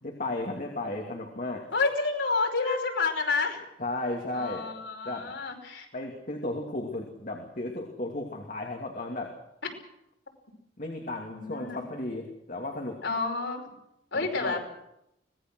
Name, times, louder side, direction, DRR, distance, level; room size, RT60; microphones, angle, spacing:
voice 1, 0.0-1.7 3.8-4.6 5.0-5.3 5.9-9.3 10.8-13.0 14.1-14.6, left 2 dB, 45° left, 1 dB, 2.8 m, -34 dB
voice 2, 1.7-3.6 4.3-5.9 11.3-11.8 13.0-13.7 14.1-14.6, left 4 dB, 85° left, 1 dB, 5.3 m, -29 dB
24.5 x 19.0 x 6.3 m, 0.82 s
head